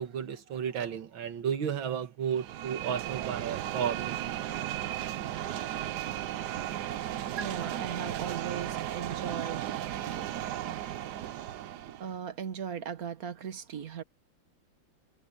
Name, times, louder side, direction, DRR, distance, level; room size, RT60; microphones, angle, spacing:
voice 1, 0.0-4.5, right 8 dB, 80° right, 2.2 m, -33 dB
sound 1, 2.3-12.1, right 12 dB, 65° right, 1.2 m, -35 dB
voice 2, 6.0-10.4 10.9-14.0, right 8 dB, 50° right, 1.7 m, -40 dB
omnidirectional pair, 2.2 m